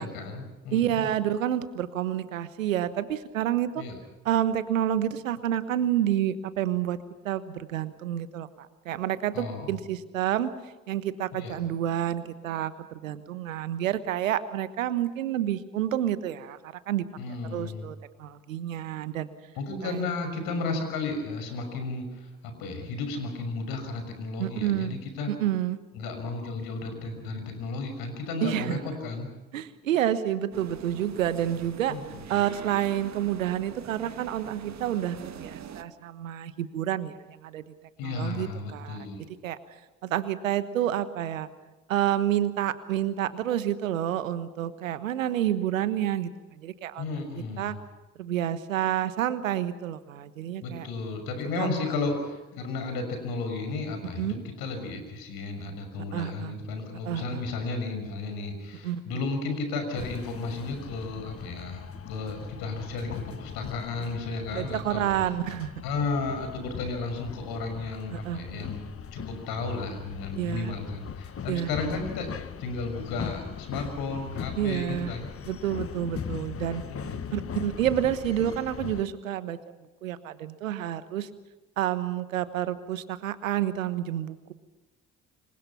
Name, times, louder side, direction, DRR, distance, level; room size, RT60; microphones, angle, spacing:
voice 1, 0.0-0.9 3.8-4.0 9.3-9.7 11.3-11.6 17.2-17.9 19.5-25.3 25.9-29.4 31.9-32.2 38.0-39.3 47.0-47.7 50.6-65.1 65.8-68.8 69.1-72.3 72.6-75.3 76.9-77.4, left 3 dB, 65° left, 6 dB, 6.2 m, -33 dB
voice 2, 0.7-3.8 4.2-7.0 7.2-8.5 8.8-10.5 10.9-17.0 17.5-19.3 19.8-20.0 24.4-25.0 25.3-25.8 28.4-28.8 29.5-31.9 32.3-37.6 38.0-39.1 39.4-39.6 40.0-41.5 41.9-47.0 47.6-47.7 48.2-50.9 51.6-51.8 54.2-54.4 56.1-56.5 57.0-57.4 58.8-59.2 64.5-65.8 68.1-68.6 70.3-70.7 71.5-71.7 74.6-75.1 75.5-76.8 77.3-79.6 80.0-81.3 81.8-84.5, right 11 dB, 85° right, 13 dB, 1.3 m, -29 dB
sound 1, 30.5-35.8, right 8 dB, 45° right, 1.8 m, -43 dB
sound 2, 60.0-79.0, left 7 dB, 35° left, 1.3 m, -39 dB
27.0 x 23.0 x 5.9 m, 1.1 s
hypercardioid pair, 55°, 38 cm